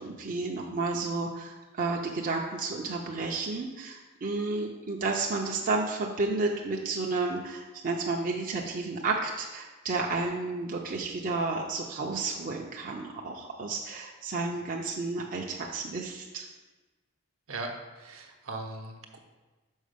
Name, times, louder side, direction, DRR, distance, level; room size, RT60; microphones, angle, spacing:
voice 1, 0.0-16.5, right 3 dB, 40° right, -1 dB, 0.6 m, -31 dB
voice 2, 17.5-19.2, right 2 dB, 70° right, 3 dB, 0.9 m, -39 dB
6.3 x 4.7 x 5.1 m, 1.2 s
head